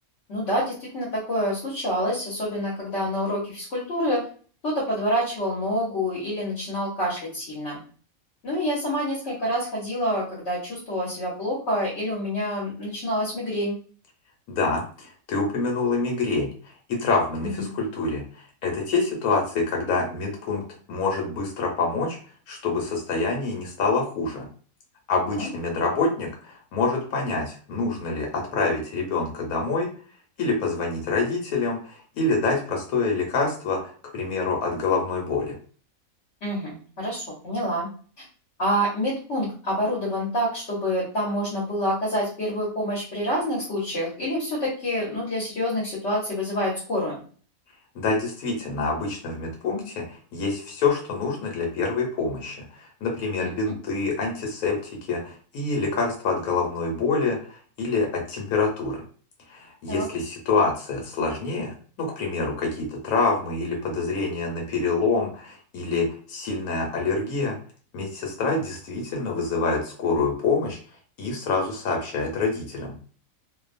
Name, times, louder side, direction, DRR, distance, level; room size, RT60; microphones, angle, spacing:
voice 1, 0.3-4.2 4.6-7.8 8.4-13.8 17.4-17.7 25.4-25.5 36.4-37.9 38.2-38.3 38.6-47.2 53.4-53.7 59.9-60.0, equal, 55° left, -6 dB, 1.2 m, -27 dB
voice 2, 14.5-16.5 16.9-18.2 18.6-20.6 20.9-22.2 22.5-24.5 25.1-29.9 30.4-35.6 47.9-59.0 59.5-67.6 67.9-70.8 71.2-73.0, left 3 dB, 90° left, 1 dB, 1.2 m, -26 dB
2.8 x 2.2 x 2.5 m, 0.42 s
omnidirectional pair, 1.5 m